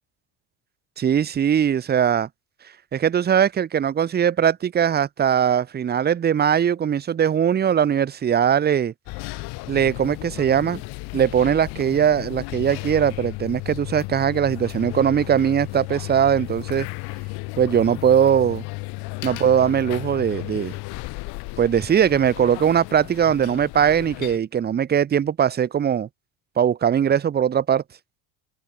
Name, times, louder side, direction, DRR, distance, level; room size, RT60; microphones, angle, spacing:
voice 1, 1.0-2.3 2.9-8.9 9.7-10.8 11.1-16.9 17.6-18.6 19.2-20.7 21.6-26.1 26.6-27.8, right 8 dB, 25° right, 0.8 m, -20 dB
sound 1, 9.1-24.4, left 25 dB, 75° left, 7.3 m, -34 dB
open air
cardioid pair, 125°, 39 cm